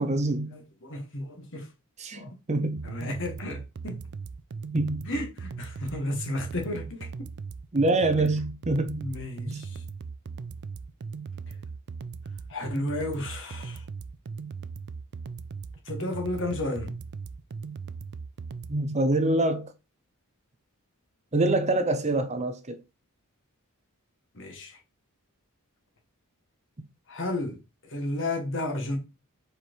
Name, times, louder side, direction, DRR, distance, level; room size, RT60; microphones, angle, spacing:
voice 1, 0.0-0.5 2.0-2.9 4.7-5.1 7.7-9.0 9.5-9.6 18.7-19.7 21.3-22.8 26.8-26.9, right 2 dB, 30° right, 0.8 m, -25 dB
voice 2, 0.5-1.7 2.1-2.4 2.8-4.0 5.0-7.1 8.9-9.8 12.5-13.8 15.9-16.9 24.3-24.8 27.1-27.6 27.8-29.0, left 2 dB, 60° left, 1.7 m, -33 dB
sound 1, 2.8-18.8, right 5 dB, 50° right, 0.4 m, -38 dB
5.1 x 4.4 x 4.6 m
head